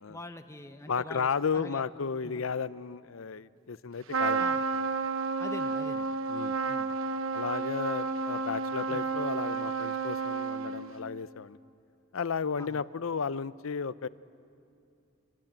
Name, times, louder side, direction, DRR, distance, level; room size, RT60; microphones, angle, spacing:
voice 1, 0.1-1.8 2.3-2.4 4.4-4.6 5.4-6.1 6.7-6.9 8.9-9.0 12.6-12.8, left 1 dB, 15° left, 7 dB, 0.8 m, -45 dB
voice 2, 0.9-4.4 4.7-4.9 6.3-6.6 7.3-11.6 12.1-14.1, left 5 dB, 90° left, 17 dB, 0.6 m, -33 dB
Trumpet, 4.1-11.0, right 4 dB, 90° right, 1.1 m, -31 dB
26.5 x 24.0 x 8.9 m, 2.6 s
head